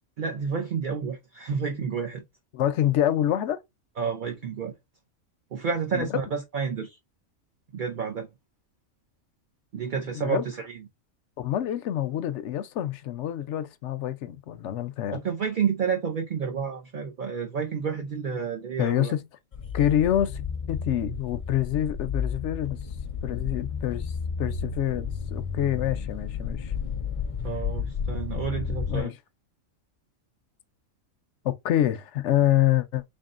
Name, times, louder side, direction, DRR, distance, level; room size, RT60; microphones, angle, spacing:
voice 1, 0.2-2.2 4.0-4.7 5.5-7.0 7.7-8.3 9.7-10.8 15.1-19.1 27.4-29.1, right 6 dB, 50° right, 0.7 m, -30 dB
voice 2, 2.5-3.6 5.9-6.2 10.1-10.4 11.4-15.2 18.8-19.2 19.7-20.4 20.7-22.8 23.2-24.1 24.4-26.7 28.5-29.1 31.4-33.0, left 12 dB, 70° left, 0.8 m, -26 dB
sound 1, 19.5-29.0, left 6 dB, 45° left, 0.4 m, -32 dB
3.8 x 3.6 x 2.4 m
omnidirectional pair, 1.4 m